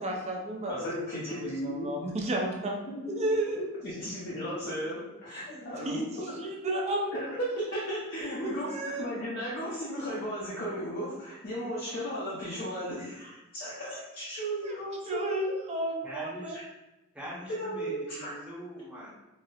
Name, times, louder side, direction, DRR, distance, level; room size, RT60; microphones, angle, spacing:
voice 1, 0.0-2.8 3.1-3.6 5.5-6.0 6.4-7.1 8.4-9.1 14.6-14.8 15.1-16.6, right 1 dB, 30° right, 1 dB, 0.4 m, -33 dB
voice 2, 0.7-1.9 2.9-3.2 3.8-6.0 7.1-8.7 9.0-15.5 16.5-16.6 17.5-18.3, equal, 45° left, -8 dB, 0.6 m, -35 dB
voice 3, 16.0-16.6 17.1-19.1, equal, 5° right, -7 dB, 0.8 m, -42 dB
4.1 x 2.0 x 2.4 m, 1.0 s
head